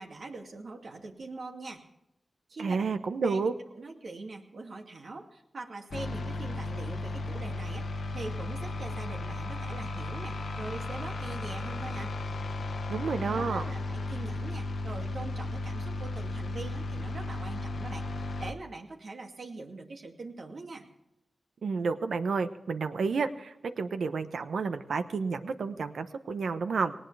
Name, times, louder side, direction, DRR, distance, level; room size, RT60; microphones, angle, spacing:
voice 1, 0.0-1.8 2.5-3.0 3.2-3.5 3.7-12.1 13.2-20.8, right 3 dB, 75° right, 2 dB, 2.4 m, -43 dB
voice 2, 2.6-3.5 12.9-13.6 21.6-26.9, right 4 dB, 90° right, 9 dB, 1.0 m, -30 dB
sound 1, 5.9-18.5, left 2 dB, 85° left, 1.1 m, -35 dB
19.0 x 18.0 x 3.4 m, 0.87 s
cardioid pair, 55°, 0 cm